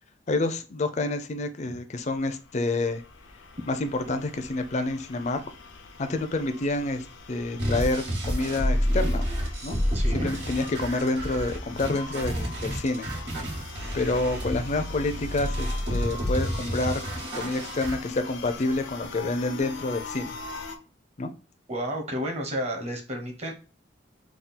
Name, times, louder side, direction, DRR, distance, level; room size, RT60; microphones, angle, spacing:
voice 1, 0.3-3.0 3.7-5.4 6.0-9.3 9.6-9.8 10.1-13.1 13.9-17.0 17.3-20.4 21.2-21.3, left 2 dB, 40° left, 8 dB, 0.5 m, -28 dB
sound 1, 2.0-20.8, left 4 dB, 85° left, 0.7 m, -43 dB
sound 2, 7.6-18.0, equal, 85° right, 1.9 m, -29 dB
voice 2, 9.9-10.3 21.7-23.5, equal, 35° right, 2 dB, 1.0 m, -31 dB
3.6 x 2.3 x 4.1 m, 0.35 s
head